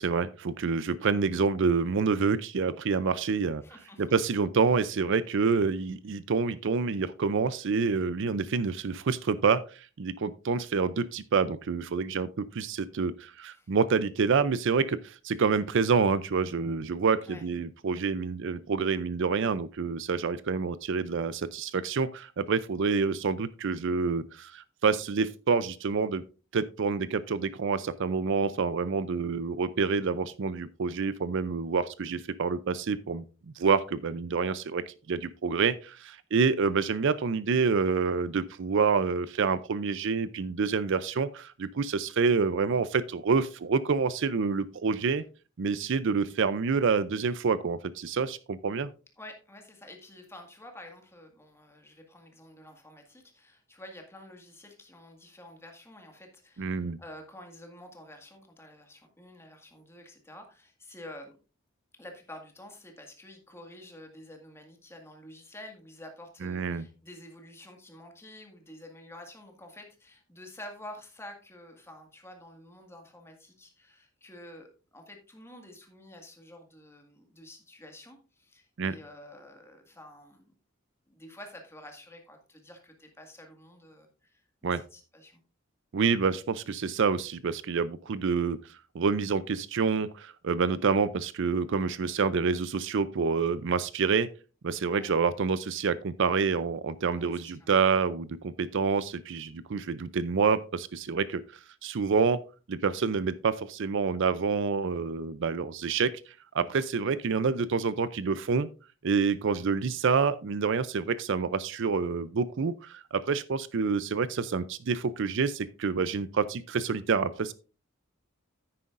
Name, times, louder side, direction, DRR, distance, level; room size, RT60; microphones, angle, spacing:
voice 1, 0.0-3.6 4.0-26.2 26.5-33.2 33.6-45.2 45.6-48.9 56.6-57.0 66.4-66.9 78.8-78.9 84.6-84.8 85.9-88.6 88.9-94.3 94.6-101.4 101.8-102.4 102.7-106.1 106.5-108.7 109.0-117.5, right 5 dB, 65° right, 0.5 m, -27 dB
voice 2, 3.6-4.2 13.5-13.7 17.2-17.5 49.2-61.3 62.0-80.5 81.1-85.4 94.9-95.1 97.2-97.7, left 1 dB, 15° left, 1.8 m, -49 dB
9.8 x 9.3 x 2.5 m
head